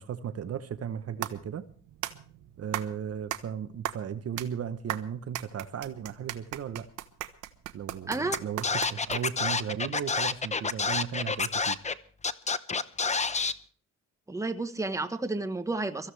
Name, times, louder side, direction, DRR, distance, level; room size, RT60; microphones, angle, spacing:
voice 1, 0.0-1.6 2.6-6.9 7.7-11.8, right 8 dB, 55° right, 1.0 m, -36 dB
sound 1, 0.7-9.5, right 13 dB, 85° right, 1.1 m, -38 dB
voice 2, 8.1-8.4 14.3-16.1, right 2 dB, 10° right, 1.3 m, -31 dB
Scratching (performance technique), 8.3-8.4 8.6-11.9 12.2-13.5, left 4 dB, 25° left, 0.8 m, -28 dB
23.5 x 14.5 x 3.3 m
cardioid pair, 90°, 30 cm